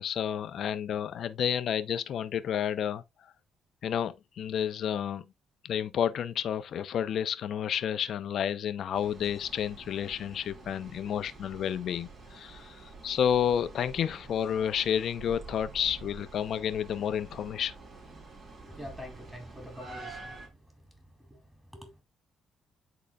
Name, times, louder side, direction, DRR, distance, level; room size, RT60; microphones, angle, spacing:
voice 1, 0.0-3.0 3.8-5.2 5.6-12.7 13.0-17.7, left 9 dB, 65° left, 0.7 m, -30 dB
sound 1, 8.9-20.5, right 3 dB, 45° right, 3.4 m, -48 dB
voice 2, 18.6-20.4 21.3-21.4 21.7-22.0, left 1 dB, 5° right, 2.7 m, -45 dB
10.5 x 4.0 x 2.4 m
cardioid pair, 85°, 0 cm